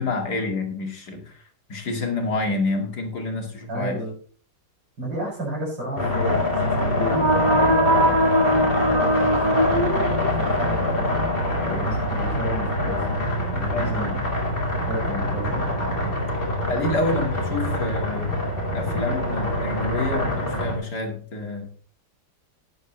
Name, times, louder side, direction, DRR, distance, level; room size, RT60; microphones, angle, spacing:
voice 1, 0.0-1.4 1.7-4.0 13.7-14.1 16.0-16.4 16.7-18.4 18.7-21.7, left 2 dB, 60° left, 2 dB, 2.8 m, -28 dB
voice 2, 3.7-4.2 5.0-8.2 8.8-13.2 13.5-14.2 14.8-15.9, right 1 dB, 90° right, -4 dB, 7.9 m, -32 dB
sound 1, 6.0-20.8, left 1 dB, 30° left, 4.7 m, -25 dB
sound 2, 6.9-10.7, right 1 dB, 40° right, 0.6 m, -22 dB
13.5 x 10.5 x 3.3 m, 0.42 s
omnidirectional pair, 1.9 m